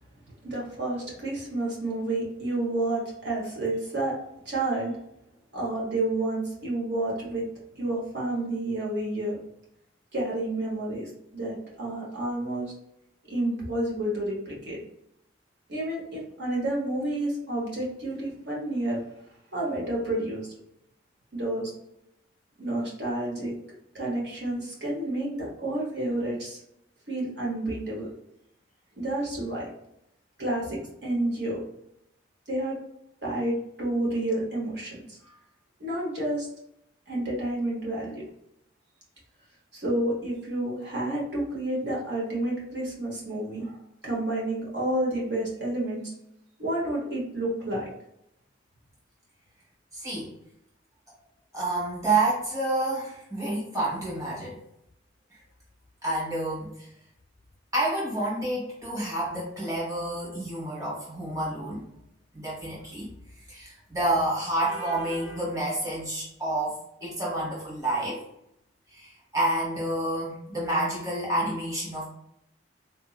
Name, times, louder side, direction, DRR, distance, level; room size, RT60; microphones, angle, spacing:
voice 1, 0.4-4.1 4.4-4.9 5.5-7.4 7.8-9.4 10.1-12.7 13.3-14.8 15.7-19.0 19.5-20.5 21.3-21.7 22.6-23.5 23.9-26.6 27.1-28.1 29.0-29.7 30.4-31.6 32.5-32.8 33.2-35.3 35.8-36.5 37.1-38.2 39.7-43.7 44.0-46.1 46.6-47.9, right 1 dB, 55° right, -4 dB, 1.1 m, -30 dB
voice 2, 49.9-50.3 51.5-54.6 56.0-56.9 57.7-61.8 62.3-63.1 63.3-68.2 68.9-72.2, right 2 dB, 15° right, -6 dB, 1.1 m, -29 dB
3.9 x 2.7 x 2.4 m, 0.81 s
head